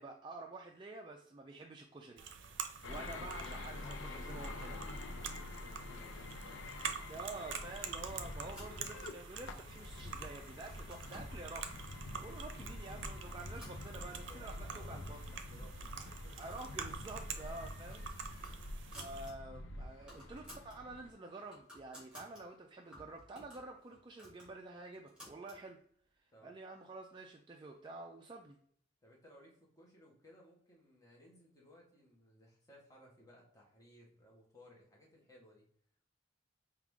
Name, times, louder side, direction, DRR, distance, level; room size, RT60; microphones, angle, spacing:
voice 1, 0.0-4.8 7.1-15.2 16.4-18.1 18.5-18.7 18.9-25.8 26.2-28.6, right 3 dB, 25° right, 1 dB, 0.4 m, -49 dB
sound 1, 2.2-19.3, right 6 dB, 80° right, 0.5 m, -47 dB
sound 2, 2.8-21.1, left 2 dB, 80° left, 0.5 m, -47 dB
voice 2, 3.8-6.3 9.5-10.0 14.0-16.5 17.3-17.4 26.3-26.5 29.0-35.7, left 1 dB, 20° left, -2 dB, 1.2 m, -61 dB
sound 3, 7.8-9.2 9.7-10.2 10.5-11.4 12.1-12.2 12.6-12.8 13.2-14.4 14.8-14.9 15.1-15.2 15.9-16.8 17.1-17.3 17.7-19.3 19.7-19.8 20.0-20.8 21.2-22.4 22.9-25.6, equal, 5° right, 1.7 m, -57 dB
4.7 x 2.4 x 3.5 m, 0.62 s
head